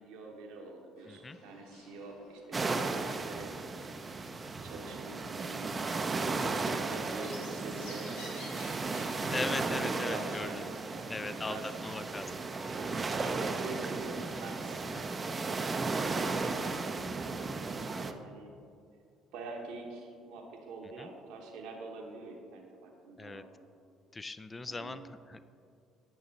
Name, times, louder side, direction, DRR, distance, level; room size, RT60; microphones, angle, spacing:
voice 1, 0.0-3.9 4.6-8.8 9.8-12.4 12.6-15.7 16.6-18.6 19.3-23.5 24.7-25.0, right 3 dB, 70° right, 1 dB, 1.0 m, -46 dB
sound 1, 1.0-15.0, left 1 dB, 85° left, 1.6 m, -55 dB
voice 2, 1.0-1.4 9.3-10.6 11.1-12.3 14.9-15.1 21.0-21.1 23.2-23.4 24.1-25.5, left 3 dB, 25° left, 13 dB, 0.4 m, -39 dB
sound 2, 2.5-18.1, right 3 dB, 30° right, 0.5 m, -35 dB
9.0 x 6.0 x 4.1 m, 2.4 s
hypercardioid pair, 55°, 0 cm